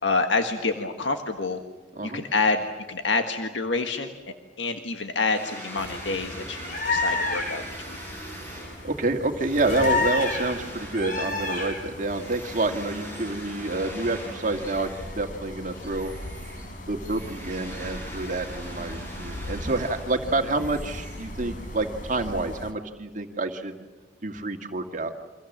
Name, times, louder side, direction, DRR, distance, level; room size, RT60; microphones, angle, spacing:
voice 1, 0.0-1.6 2.0-4.1 4.6-8.0, left 3 dB, 85° left, 6 dB, 1.7 m, -27 dB
sound 1, 5.3-15.3 15.7-21.7, right 1 dB, 15° left, 7.3 m, -42 dB
sound 2, 5.8-22.7, left 3 dB, 45° left, 3.8 m, -34 dB
voice 2, 8.8-16.1 16.9-23.8 24.2-25.1, right 2 dB, 45° right, 5 dB, 2.1 m, -28 dB
29.5 x 25.5 x 7.4 m, 1.2 s
head